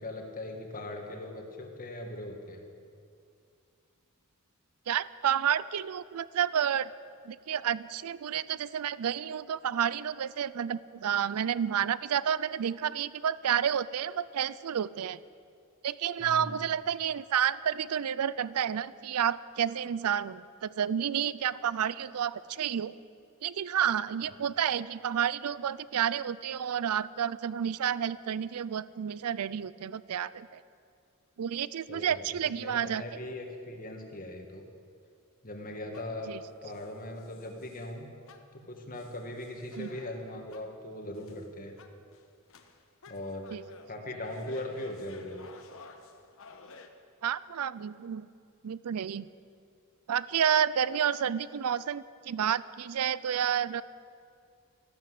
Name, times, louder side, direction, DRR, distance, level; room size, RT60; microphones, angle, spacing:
voice 1, 0.0-2.6 16.2-16.6 31.9-34.6 35.4-36.3 36.6-38.1 38.5-41.8 43.1-43.5 43.9-45.5, left 1 dB, 40° left, 2 dB, 2.0 m, -40 dB
voice 2, 4.9-6.9 7.3-15.2 15.8-22.9 23.4-30.6 31.4-33.0 36.3-36.4 39.8-39.9 43.5-43.6 47.2-48.3 48.6-49.3 50.1-53.8, right 8 dB, 80° right, 18 dB, 0.4 m, -30 dB
sound 1, 35.6-36.3 36.7-37.9 38.3-40.8 41.1-41.5 41.8-46.9, left 4 dB, 65° left, 1.2 m, -54 dB
13.5 x 12.5 x 7.9 m, 2.4 s
head